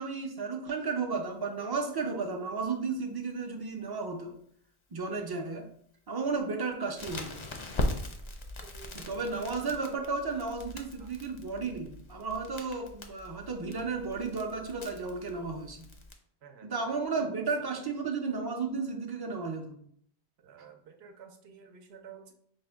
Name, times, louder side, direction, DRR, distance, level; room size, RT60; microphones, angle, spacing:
voice 1, 0.0-4.3 4.9-5.7 6.1-7.4 8.9-15.9 16.6-19.8, right 4 dB, 40° right, 3 dB, 0.3 m, -33 dB
Crackle, 7.0-16.1, left 1 dB, 45° left, 0.4 m, -40 dB
voice 2, 8.6-9.8 16.4-16.7 17.2-17.3 17.7-17.8 20.4-22.3, right 7 dB, 80° right, 4 dB, 0.8 m, -51 dB
5.2 x 2.1 x 3.4 m, 0.66 s
omnidirectional pair, 1.1 m